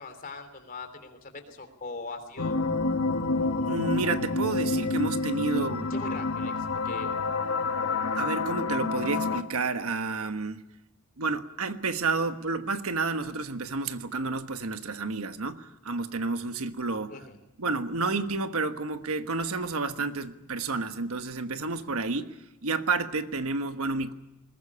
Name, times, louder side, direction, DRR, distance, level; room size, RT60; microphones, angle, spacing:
voice 1, 0.0-2.6 5.5-7.1 17.1-17.4, left 3 dB, 40° left, 3.2 m, -41 dB
sound 1, 2.4-9.4, left 3 dB, 70° left, 1.4 m, -28 dB
voice 2, 3.6-6.0 8.1-10.6 11.2-17.2 17.6-24.1, right 3 dB, 70° right, 1.3 m, -30 dB
21.5 x 20.0 x 9.7 m
head